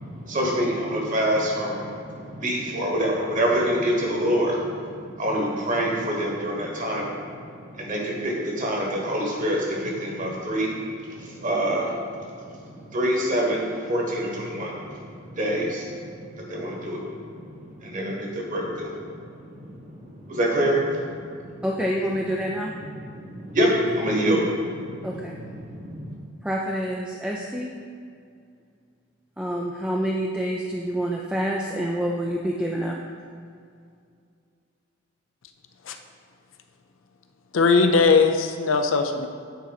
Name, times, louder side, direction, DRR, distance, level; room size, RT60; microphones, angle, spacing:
voice 1, 0.0-21.7 22.7-26.1, equal, 40° right, -2 dB, 1.3 m, -27 dB
voice 2, 21.6-22.7 25.0-25.3 26.4-27.7 29.4-33.0, equal, 5° right, -2 dB, 0.3 m, -27 dB
voice 3, 37.5-39.3, left 4 dB, 75° left, 6 dB, 0.5 m, -19 dB
9.3 x 3.9 x 4.1 m, 2.3 s
head